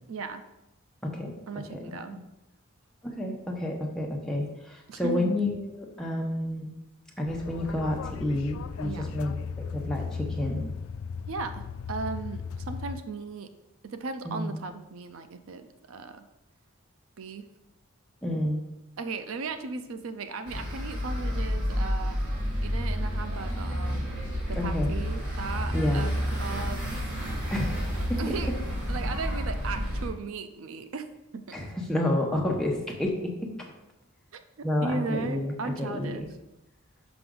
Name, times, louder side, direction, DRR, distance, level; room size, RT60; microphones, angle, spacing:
voice 1, 0.1-0.5 1.5-2.2 4.9-5.3 8.8-9.2 11.3-13.5 13.8-16.3 17.2-17.5 19.0-22.2 22.6-24.0 24.5-26.8 28.2-28.5 28.9-31.1 31.3-31.6 34.3-36.3, right 4 dB, 70° right, 9 dB, 0.5 m, -36 dB
voice 2, 1.0-1.3 1.7-1.8 2.1-2.2 3.0-6.7 7.2-10.7 14.2-14.5 18.2-18.6 24.6-25.0 25.7-26.0 27.5-28.2 31.5-33.5 34.6-36.3, left 1 dB, 5° left, -2 dB, 0.9 m, -30 dB
sound 1, 7.3-13.0, left 6 dB, 70° left, 0.3 m, -36 dB
sound 2, 20.5-30.1, equal, 90° right, 2.7 m, -30 dB
6.1 x 5.8 x 3.8 m, 0.91 s
head